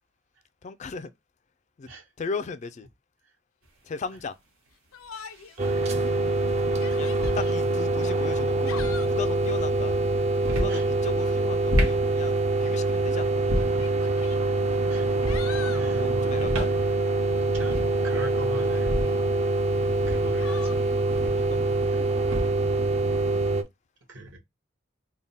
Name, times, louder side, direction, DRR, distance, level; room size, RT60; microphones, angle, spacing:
voice 1, 0.6-1.1 1.8-1.9 2.2-2.9 3.9-4.3 6.7-8.8 9.0-10.0 10.5-13.4 15.9-16.7 19.8-20.0 21.5-21.7, left 4 dB, 35° left, 0.3 m, -36 dB
sound 1, 3.6-3.7 5.2-5.6 6.8-7.5 8.5-9.0 10.3-10.8 11.5-12.0 13.3-13.9 15.1-15.5 16.3-16.8 17.1-17.2 17.5-18.0 18.7-19.2 19.9-21.5 22.2-22.7, equal, 85° right, 1.4 m, -30 dB
Yell, 4.9-5.6 6.0-6.1 6.7-7.6 8.4-9.3 11.0-11.4 12.6-12.7 13.6-14.4 14.9-15.9 18.5-19.2 20.4-20.8, left 7 dB, 90° left, 0.5 m, -42 dB
sound 2, 5.6-23.6, right 2 dB, 35° right, 0.5 m, -25 dB
voice 2, 5.6-6.0 7.1-7.2 10.7-10.9 12.0-12.1 12.8-12.9 14.9-15.1 15.4-16.6 17.0-17.1 17.5-19.1 20.1-20.8 21.9-22.0 24.1-24.4, right 1 dB, 70° right, 1.2 m, -40 dB
3.5 x 2.2 x 3.9 m
head